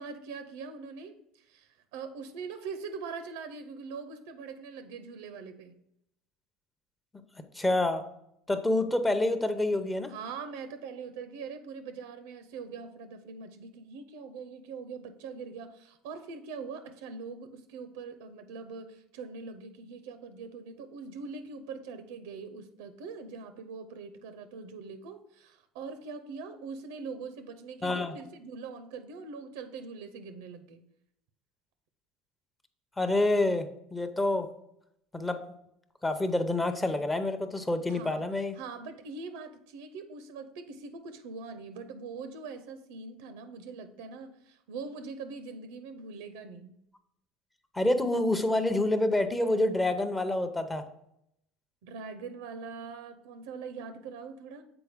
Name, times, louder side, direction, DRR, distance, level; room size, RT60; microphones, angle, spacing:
voice 1, 0.0-5.8 10.1-30.8 37.9-38.3 38.6-46.8 51.8-54.6, right 5 dB, 90° right, 9 dB, 0.6 m, -42 dB
voice 2, 7.5-8.0 8.5-10.1 27.8-28.2 33.0-34.5 35.1-35.4 36.0-38.6 47.7-50.8, left 2 dB, 10° left, 8 dB, 0.6 m, -27 dB
6.9 x 4.3 x 3.5 m, 0.77 s
supercardioid pair, 120°, 0 cm